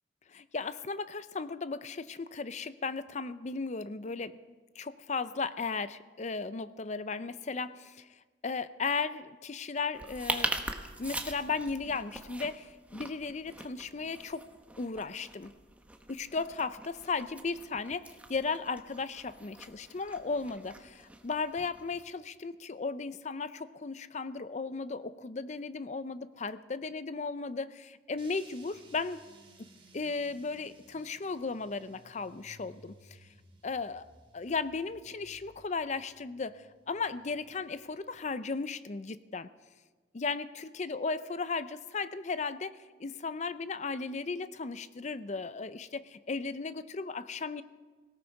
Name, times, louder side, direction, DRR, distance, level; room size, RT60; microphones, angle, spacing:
voice 1, 0.3-4.4 4.8-8.1 8.4-14.5 14.8-15.5 16.1-29.2 29.9-32.9 33.6-34.1 34.3-39.5 40.1-47.6, left 4 dB, 40° left, 14 dB, 0.5 m, -36 dB
sound 1, 9.9-22.1, right 1 dB, 10° right, 1.0 m, -42 dB
sound 2, 28.2-38.4, right 2 dB, 30° right, 2.9 m, -59 dB
18.0 x 17.5 x 4.7 m, 1.4 s
head